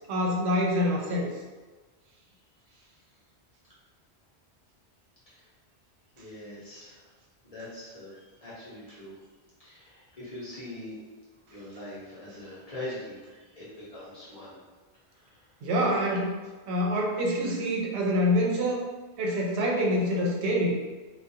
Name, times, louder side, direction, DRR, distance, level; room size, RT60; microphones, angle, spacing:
voice 1, 0.1-1.3 15.6-16.3 16.7-18.8 19.2-20.8, equal, 75° right, -1 dB, 0.8 m, -26 dB
voice 2, 6.2-7.0 7.4-9.1 9.6-10.9 11.5-13.2 13.5-14.6 15.3-15.4, left 1 dB, 35° left, -9 dB, 0.8 m, -42 dB
2.3 x 2.2 x 2.7 m, 1.3 s
omnidirectional pair, 1.1 m